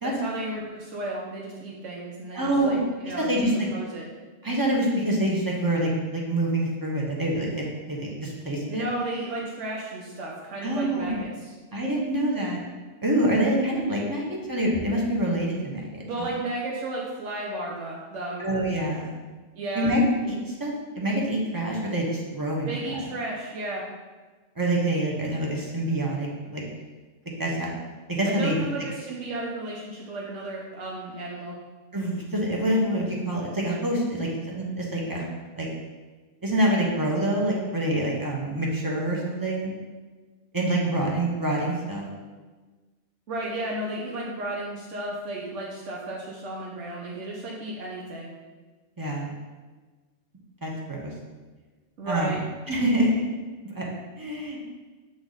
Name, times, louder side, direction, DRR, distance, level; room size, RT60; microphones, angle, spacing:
voice 1, 0.0-4.1 8.7-11.5 16.0-18.4 19.5-20.0 22.7-23.8 28.3-31.5 43.3-48.3 52.0-52.4, right 1 dB, 90° right, -3 dB, 1.2 m, -33 dB
voice 2, 2.3-2.8 3.2-3.7 4.4-8.8 10.6-11.2 11.7-12.6 13.0-16.3 18.4-19.2 19.7-23.0 24.6-26.3 26.5-26.6 27.4-27.7 28.1-28.6 31.9-35.2 35.6-35.7 36.4-39.7 40.5-42.1 49.0-49.3 50.6-51.1 52.0-52.4 52.7-53.3 53.8-53.9 54.1-54.6, right 1 dB, 20° right, -3 dB, 1.0 m, -26 dB
7.8 x 3.5 x 4.0 m, 1.3 s
omnidirectional pair, 1.2 m